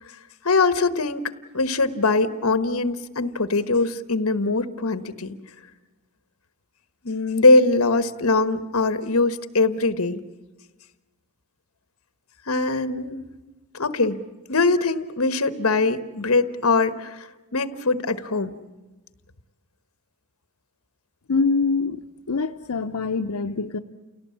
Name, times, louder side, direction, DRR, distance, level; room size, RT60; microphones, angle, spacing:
voice 1, 0.4-1.2 1.5-5.3 7.0-10.2 12.5-13.2 13.7-14.2 14.5-17.2 17.5-18.6, left 3 dB, 65° left, 12 dB, 1.3 m, -22 dB
voice 2, 21.3-22.0 22.3-23.8, left 4 dB, 90° left, 5 dB, 0.8 m, -24 dB
29.5 x 18.0 x 8.6 m, 1.2 s
head